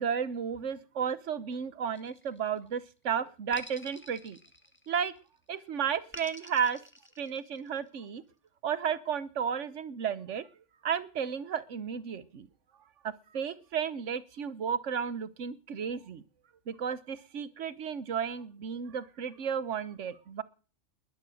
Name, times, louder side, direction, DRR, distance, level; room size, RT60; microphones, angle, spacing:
voice 1, 0.0-4.4 4.9-5.1 5.5-6.8 7.2-8.2 8.6-10.5 10.8-12.5 13.0-16.2 16.7-20.4, right 7 dB, 70° right, 16 dB, 1.3 m, -33 dB
sound 1, 1.9-2.8 3.5-5.2 6.1-7.8, left 1 dB, 10° left, 1.6 m, -49 dB
20.5 x 9.7 x 6.5 m, 0.38 s
omnidirectional pair, 1.3 m